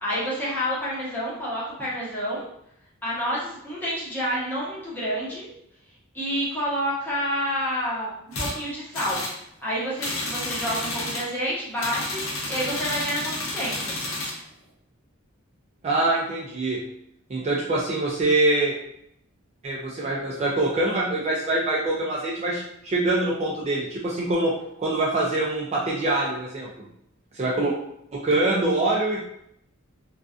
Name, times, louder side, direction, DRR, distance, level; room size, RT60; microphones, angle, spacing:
voice 1, 0.0-2.5 3.0-5.5 6.1-9.2 9.6-12.2 12.5-14.0, equal, 10° left, -8 dB, 0.8 m, -29 dB
sound 1, 8.3-8.6 8.9-9.4 10.0-11.3 11.8-14.4, left 2 dB, 70° left, 0.7 m, -30 dB
voice 2, 15.8-16.8 17.3-18.7 19.6-26.9 27.3-27.7 28.1-29.2, right 2 dB, 30° right, -4 dB, 0.3 m, -24 dB
2.4 x 2.2 x 2.4 m, 0.75 s
head